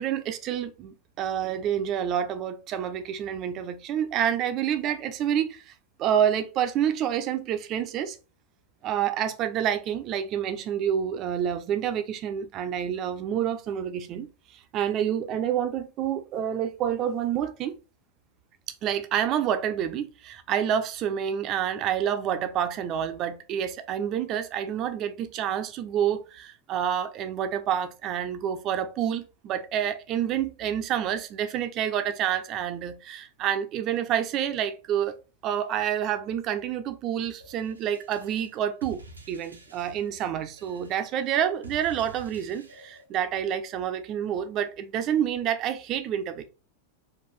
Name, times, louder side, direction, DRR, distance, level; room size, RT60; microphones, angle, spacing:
voice 1, 0.0-5.7 6.0-8.2 8.8-17.7 18.7-35.1 35.4-46.5, right 9 dB, 35° right, 0.6 m, -28 dB
sound 1, 37.4-43.0, right 2 dB, 80° right, 0.8 m, -49 dB
4.3 x 2.5 x 3.2 m
figure-of-eight pair, 90°, 0 cm